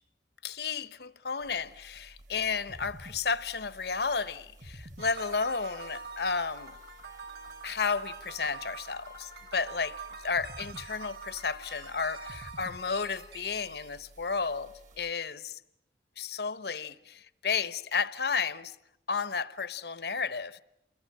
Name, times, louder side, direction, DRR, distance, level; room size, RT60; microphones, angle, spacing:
voice 1, 0.4-6.7 7.6-15.6 16.2-18.7 19.1-20.6, left 5 dB, 65° left, 0.9 m, -32 dB
sound 1, 1.4-15.1, right 1 dB, 45° right, 1.5 m, -52 dB
sound 2, 5.0-14.0, right 4 dB, 70° right, 2.7 m, -46 dB
28.5 x 22.0 x 8.5 m
head